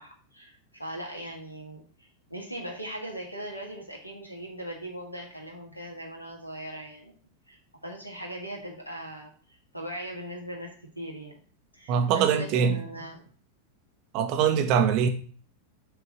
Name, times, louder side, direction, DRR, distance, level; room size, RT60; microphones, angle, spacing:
voice 1, 0.0-7.1 7.5-11.4 11.7-13.2, right 1 dB, 85° left, 1.8 m, -39 dB
voice 2, 11.9-12.8 14.1-15.1, right 7 dB, 40° right, 1.2 m, -23 dB
6.8 x 4.4 x 6.3 m
figure-of-eight pair, 90°, 0 cm